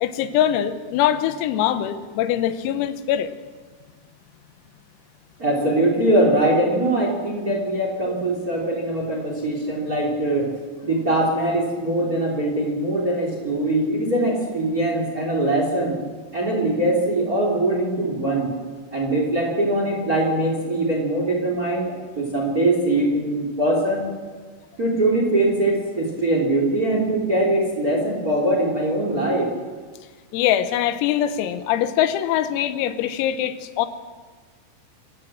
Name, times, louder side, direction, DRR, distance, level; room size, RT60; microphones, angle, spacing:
voice 1, 0.0-3.3 8.1-8.2 30.3-33.9, left 11 dB, 85° left, 12 dB, 3.8 m, -22 dB
voice 2, 5.4-10.6 10.8-16.0 16.3-18.5 18.9-24.1 24.8-29.5, right 1 dB, 25° right, 2 dB, 2.4 m, -22 dB
26.5 x 15.0 x 7.4 m, 1.4 s
omnidirectional pair, 6.0 m